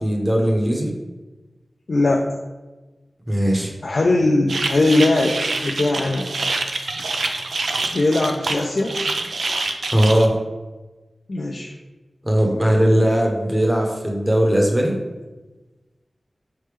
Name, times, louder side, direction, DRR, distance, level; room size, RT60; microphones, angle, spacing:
voice 1, 0.0-0.9 3.3-3.7 9.9-10.4 12.2-14.9, equal, 20° right, 0 dB, 0.9 m, -18 dB
voice 2, 1.9-2.4 3.8-6.3 7.9-9.0 11.3-11.7, left 2 dB, 60° left, 0 dB, 0.4 m, -20 dB
sound 1, 4.5-10.3, right 3 dB, 90° right, 0.3 m, -26 dB
4.2 x 3.3 x 3.3 m, 1.2 s
wide cardioid pair, 60°, 0 cm